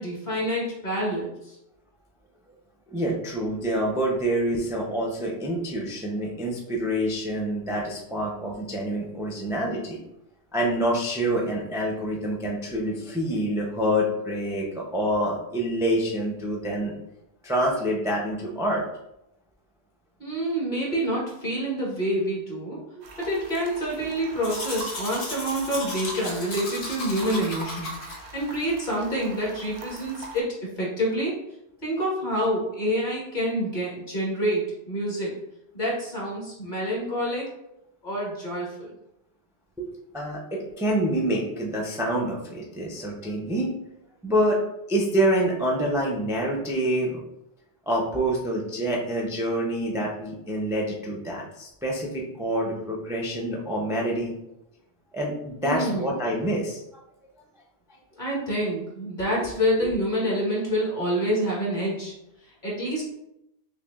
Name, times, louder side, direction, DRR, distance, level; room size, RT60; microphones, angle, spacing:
voice 1, 0.0-1.6 20.2-22.8 23.2-27.9 28.3-31.3 31.8-35.3 35.7-37.5 38.0-38.9 55.6-56.1 58.2-62.1 62.6-63.0, equal, 50° left, -4 dB, 1.4 m, -27 dB
voice 2, 2.9-10.0 10.5-16.9 17.4-18.8 39.8-43.7 44.2-44.6 44.9-47.2 47.9-54.3 55.1-56.8, right 1 dB, 5° right, -3 dB, 0.3 m, -27 dB
sound 1, 23.0-30.4, right 3 dB, 90° right, 0.9 m, -42 dB
Domestic sounds home sounds, 24.4-28.2, left 2 dB, 75° left, 1.1 m, -35 dB
5.9 x 2.3 x 2.3 m, 0.83 s
omnidirectional pair, 1.1 m